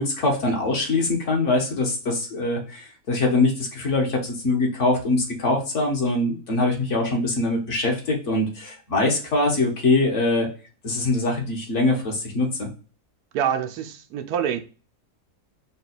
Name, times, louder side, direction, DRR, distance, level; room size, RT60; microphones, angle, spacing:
voice 1, 0.0-10.5 10.8-12.7, left 2 dB, 55° left, 1.4 m, -23 dB
voice 2, 13.3-14.6, right 8 dB, 85° right, 1.1 m, -26 dB
4.1 x 2.3 x 4.0 m
omnidirectional pair, 1.6 m